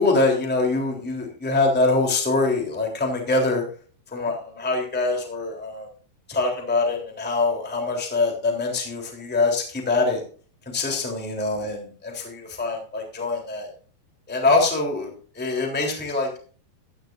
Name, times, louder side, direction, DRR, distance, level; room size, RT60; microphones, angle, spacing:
voice 1, 0.0-3.6 4.1-5.9 6.3-10.2 10.6-13.7 14.3-16.4, left 3 dB, 5° left, 1 dB, 2.6 m, -24 dB
15.5 x 11.0 x 2.6 m, 0.41 s
omnidirectional pair, 5.1 m